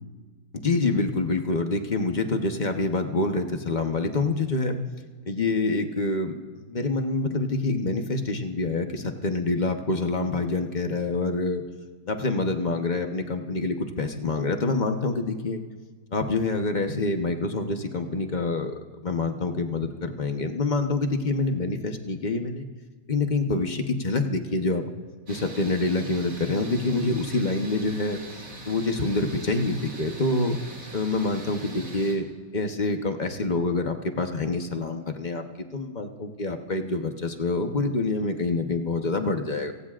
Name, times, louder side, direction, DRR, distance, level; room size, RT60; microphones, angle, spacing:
voice 1, 0.6-4.8 5.3-6.3 6.7-11.6 12.1-15.6 16.1-22.7 23.1-24.9 25.3-28.2 28.7-30.6 30.9-32.3 32.5-35.4 35.7-39.7, left 3 dB, 30° left, 5 dB, 1.0 m, -26 dB
sound 1, 25.3-32.1, right 2 dB, 65° right, 3.4 m, -42 dB
29.0 x 18.5 x 2.5 m, 1.4 s
omnidirectional pair, 1.7 m